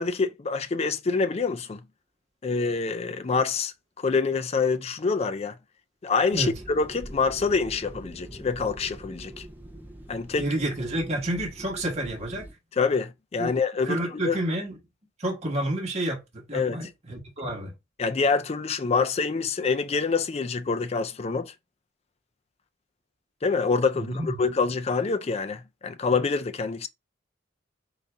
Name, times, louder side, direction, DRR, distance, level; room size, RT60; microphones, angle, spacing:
voice 1, 0.0-1.8 2.4-5.5 6.0-9.5 10.1-10.5 12.8-14.4 16.5-16.8 18.0-21.5 23.4-26.9, left 4 dB, 30° left, 0.4 m, -26 dB
sound 1, 6.3-12.5, right 1 dB, 10° right, 0.7 m, -43 dB
voice 2, 10.4-12.5 13.4-13.5 13.8-14.8 15.2-17.7 23.9-24.4, right 1 dB, 35° right, 1.3 m, -29 dB
4.0 x 2.7 x 3.4 m
head